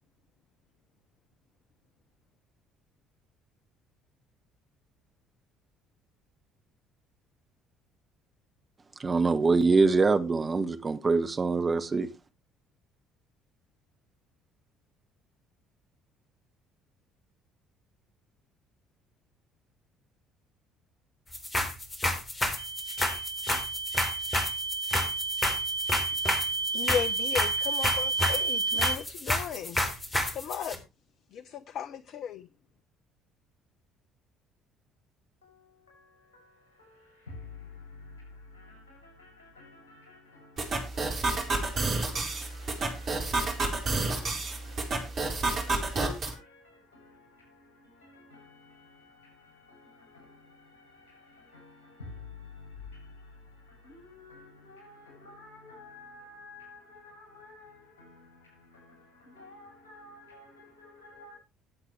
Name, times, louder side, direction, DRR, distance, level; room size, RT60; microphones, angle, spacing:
voice 1, 9.0-12.1, right 4 dB, 25° right, 1.2 m, -24 dB
sound 1, 21.3-30.8, left 1 dB, 20° left, 3.9 m, -30 dB
sound 2, 22.6-29.0, right 3 dB, 75° right, 0.7 m, -31 dB
voice 2, 26.7-29.8 30.3-30.8 31.3-32.5, left 8 dB, 50° left, 0.6 m, -35 dB
voice 3, 35.4-44.7 45.3-61.4, left 3 dB, 75° left, 7.6 m, -51 dB
sound 3, 40.6-46.3, right 3 dB, 45° right, 4.2 m, -30 dB
20.0 x 8.1 x 3.3 m
figure-of-eight pair, 50°, 0 cm